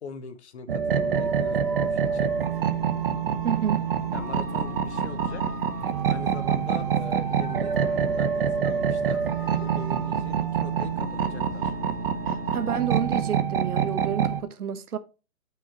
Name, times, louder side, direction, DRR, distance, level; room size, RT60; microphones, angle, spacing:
voice 1, 0.0-2.3 4.1-5.5 6.1-9.2 9.5-11.7, left 5 dB, 45° left, 1.2 m, -41 dB
sound 1, 0.7-14.4, right 7 dB, 35° right, 0.9 m, -26 dB
sound 2, 1.1-13.1, right 1 dB, 90° right, 2.4 m, -41 dB
voice 2, 3.4-3.8 12.3-15.0, right 8 dB, 70° right, 1.2 m, -29 dB
12.5 x 5.3 x 3.0 m
hypercardioid pair, 160°, 47 cm